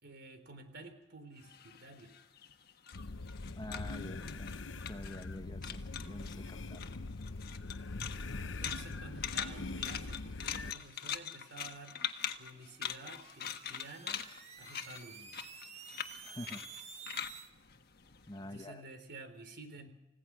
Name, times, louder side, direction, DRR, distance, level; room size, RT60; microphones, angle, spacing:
voice 1, 0.0-2.1 6.4-6.5 8.4-12.0 12.4-14.3 14.6-15.4 18.4-19.9, right 2 dB, 55° right, 8 dB, 3.8 m, -51 dB
sound 1, 1.4-5.4 5.6-6.4 6.7-18.6, left 8 dB, 50° left, 1.4 m, -42 dB
sound 2, 2.9-10.7, left 3 dB, 65° left, 0.8 m, -42 dB
voice 2, 3.5-4.5 4.9-6.9 16.2-16.6 18.3-18.8, left 1 dB, 20° left, 7 dB, 1.0 m, -47 dB
sound 3, 12.7-17.5, right 6 dB, 35° right, 1.5 m, -51 dB
29.5 x 16.5 x 6.3 m, 1.0 s
head